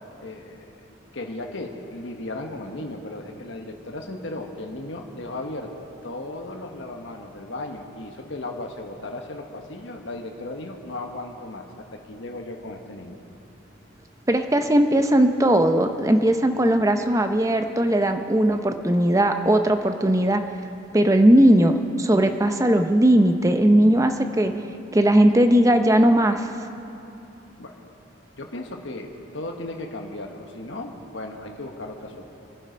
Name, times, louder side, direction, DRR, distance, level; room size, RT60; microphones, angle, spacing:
voice 1, 0.2-0.8 1.1-13.2 27.6-27.8 28.4-32.2, left 2 dB, 75° left, 3 dB, 1.2 m, -36 dB
voice 2, 14.3-20.4 20.9-24.5 24.9-26.5, right 1 dB, 15° right, 7 dB, 0.6 m, -18 dB
22.5 x 11.0 x 5.2 m, 2.8 s
head